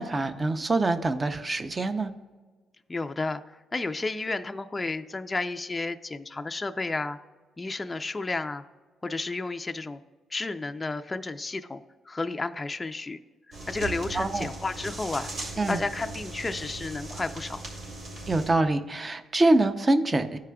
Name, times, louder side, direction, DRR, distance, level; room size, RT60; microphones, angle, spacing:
voice 1, 0.0-2.1 14.1-14.5 15.6-15.8 18.3-20.4, right 2 dB, 25° right, 10 dB, 0.5 m, -25 dB
voice 2, 2.9-3.4 3.7-7.2 7.6-8.6 9.0-10.0 10.3-13.2 13.7-15.3 15.7-17.6, left 3 dB, 20° left, 8 dB, 0.4 m, -32 dB
sound 1, 13.5-18.5, right 2 dB, 65° right, 2.3 m, -38 dB
13.5 x 4.8 x 2.3 m, 1.3 s
cardioid pair, 90°, 0 cm